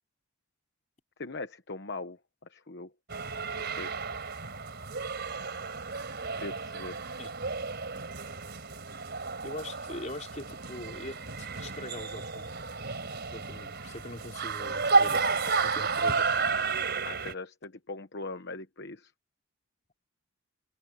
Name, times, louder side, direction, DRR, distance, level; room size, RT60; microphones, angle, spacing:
voice 1, 1.2-2.2 2.5-2.9 3.6-3.9 6.3-7.0 17.0-19.1, left 3 dB, 50° left, 1.1 m, -40 dB
sound 1, 3.1-17.3, right 4 dB, 50° right, 4.2 m, -32 dB
voice 2, 9.4-12.4 13.3-15.3 15.6-16.3, left 1 dB, 35° left, 4.1 m, -42 dB
head